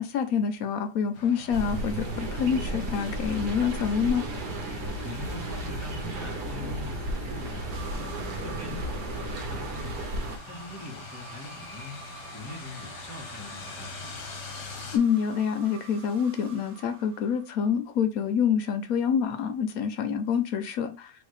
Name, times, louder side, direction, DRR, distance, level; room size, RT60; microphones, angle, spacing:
voice 1, 0.0-4.2 14.9-21.1, left 7 dB, 70° left, 1.0 m, -27 dB
sound 1, 1.1-15.0, left 4 dB, 85° left, 1.6 m, -45 dB
sound 2, 1.5-10.4, right 1 dB, 80° right, 1.5 m, -33 dB
voice 2, 5.0-8.1 8.4-10.0 10.5-12.0 12.3-14.2, left 2 dB, 10° right, 1.1 m, -42 dB
sound 3, 7.7-17.7, right 5 dB, 55° right, 1.1 m, -48 dB
4.5 x 2.8 x 3.2 m
omnidirectional pair, 1.7 m